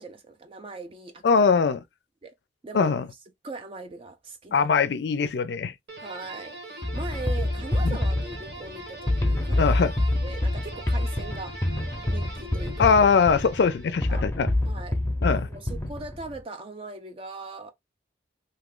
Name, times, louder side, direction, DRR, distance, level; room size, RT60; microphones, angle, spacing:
voice 1, 0.0-1.4 2.2-2.3 2.6-2.9 3.4-4.7 6.0-9.7 10.2-11.6 12.1-12.9 14.1-14.2 14.7-15.0 15.3-17.7, right 3 dB, 30° right, 0.4 m, -40 dB
voice 2, 1.2-1.8 2.7-3.1 4.5-5.7 7.8-8.0 9.6-9.9 12.8-14.5 15.2-15.5, left 5 dB, 65° left, 0.4 m, -21 dB
sound 1, 5.9-14.2, right 1 dB, 70° right, 1.2 m, -42 dB
sound 2, 6.8-16.4, left 1 dB, 15° left, 0.6 m, -27 dB
2.7 x 2.4 x 3.6 m
head